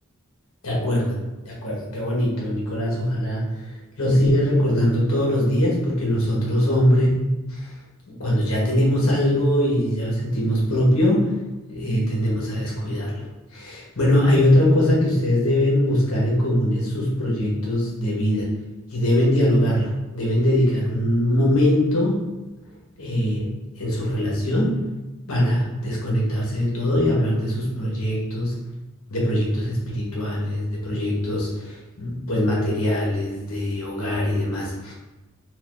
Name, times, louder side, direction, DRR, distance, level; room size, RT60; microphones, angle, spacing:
voice 1, 0.6-1.2 1.4-3.4 4.0-7.1 7.5-7.7 8.1-11.4 11.7-13.3 13.5-18.5 18.9-22.2 23.0-24.8 25.3-28.5 29.1-34.9, left 1 dB, 75° left, -4 dB, 1.1 m, -22 dB
4.0 x 2.5 x 2.5 m, 1.1 s
head